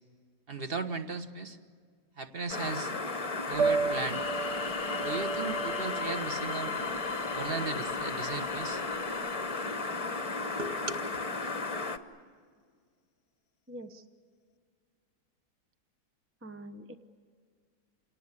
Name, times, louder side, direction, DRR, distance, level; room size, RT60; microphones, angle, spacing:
voice 1, 0.5-1.6 2.2-2.9 3.5-4.2 5.0-6.8 7.3-8.8 10.6-11.1, right 4 dB, 35° right, 8 dB, 1.3 m, -36 dB
sound 1, 2.5-12.0, left 3 dB, 25° left, 0.9 m, -34 dB
Piano, 3.5-9.5, right 4 dB, 55° right, 1.0 m, -34 dB
sound 2, 4.0-10.7, left 8 dB, 75° left, 1.4 m, -43 dB
voice 2, 13.7-14.0 16.4-16.9, right 1 dB, 20° right, 8 dB, 0.4 m, -44 dB
28.0 x 18.5 x 9.9 m, 2.1 s
omnidirectional pair, 1.9 m